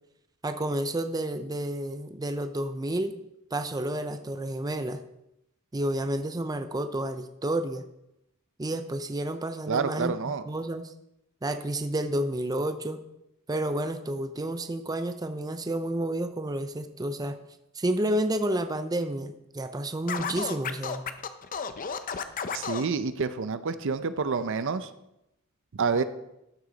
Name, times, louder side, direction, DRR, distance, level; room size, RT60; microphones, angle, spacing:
voice 1, 0.4-3.2 3.5-5.0 5.7-7.8 8.6-10.1 10.5-10.9 11.4-13.0 13.5-17.4 17.7-21.0, right 1 dB, 20° right, 9 dB, 0.5 m, -30 dB
voice 2, 9.7-10.4 22.5-24.9 25.7-26.0, right 5 dB, 60° right, 12 dB, 0.6 m, -28 dB
Scratching (performance technique), 20.1-22.9, left 6 dB, 40° left, 0.6 m, -32 dB
13.0 x 6.5 x 4.0 m, 0.85 s
head